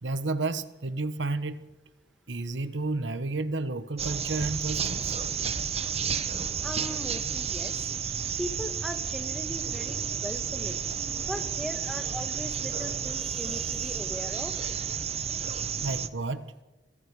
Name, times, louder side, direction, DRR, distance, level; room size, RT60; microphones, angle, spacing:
voice 1, 0.0-1.7 2.3-5.1 15.8-16.5, right 2 dB, 85° right, 12 dB, 1.1 m, -31 dB
sound 1, 4.0-16.1, right 7 dB, 35° right, 0.9 m, -31 dB
voice 2, 6.6-7.9 8.4-10.8 11.1-14.6 15.7-15.9, equal, ahead, 7 dB, 1.4 m, -39 dB
26.0 x 21.5 x 4.9 m, 1.1 s
head